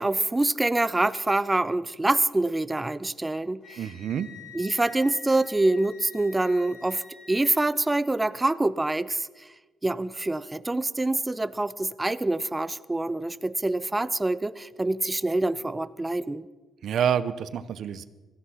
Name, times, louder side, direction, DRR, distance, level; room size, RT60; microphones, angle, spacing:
voice 1, 0.0-3.9 4.5-7.0 7.3-9.3 9.8-16.4, right 2 dB, 15° right, 16 dB, 0.6 m, -26 dB
Wind instrument woodwind instrument, 3.6-7.5, left 4 dB, 85° left, 5.6 m, -47 dB
voice 2, 3.8-4.3 16.8-18.0, right 8 dB, 65° right, 15 dB, 0.7 m, -27 dB
17.0 x 14.0 x 5.7 m, 1.3 s
cardioid pair, 90°, 0 cm